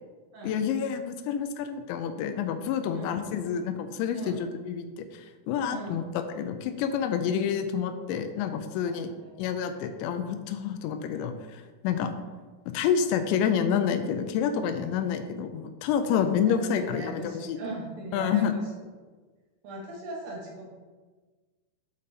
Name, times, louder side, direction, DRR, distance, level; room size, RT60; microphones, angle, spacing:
voice 1, 0.4-9.1 9.4-12.1 12.7-17.6 18.1-18.5, left 7 dB, 85° left, 8 dB, 2.6 m, -28 dB
voice 2, 5.7-6.0 8.8-9.3 12.0-12.2 16.4-18.4 18.7-18.8 19.6-20.6, right 2 dB, 65° right, -3 dB, 2.8 m, -39 dB
7.7 x 5.4 x 4.2 m, 1.3 s
omnidirectional pair, 5.8 m